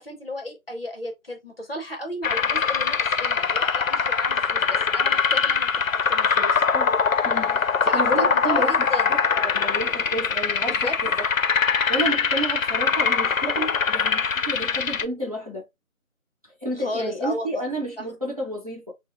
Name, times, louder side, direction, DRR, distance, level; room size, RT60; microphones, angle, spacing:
voice 1, 0.0-6.6 7.8-9.1 10.6-11.0 16.8-17.6 18.0-18.1, left 1 dB, 45° left, 0.9 m, -34 dB
sound 1, 2.2-15.0, left 6 dB, 75° left, 0.6 m, -22 dB
voice 2, 7.2-11.2 11.7-15.7 16.6-18.9, right 1 dB, 25° right, 0.8 m, -31 dB
5.9 x 2.1 x 2.4 m
figure-of-eight pair, 170°, 41 cm